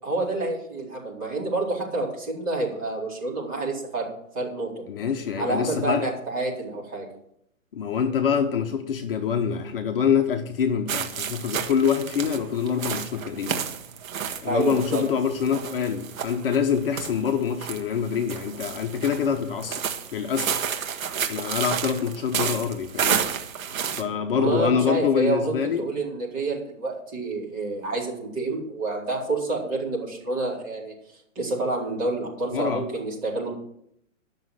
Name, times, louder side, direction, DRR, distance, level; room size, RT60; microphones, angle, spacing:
voice 1, 0.0-4.1 4.3-4.7 5.4-7.1 14.5-15.0 24.4-30.9 31.3-33.5, right 2 dB, 25° right, -5 dB, 4.3 m, -28 dB
voice 2, 4.9-6.1 7.7-13.6 14.4-20.6 21.3-23.2 23.9-25.9 32.5-32.8, left 7 dB, 40° left, 4 dB, 1.1 m, -25 dB
sound 1, 10.9-24.0, right 8 dB, 75° right, 1.7 m, -31 dB
12.0 x 6.6 x 7.7 m, 0.73 s
hypercardioid pair, 170°, 41 cm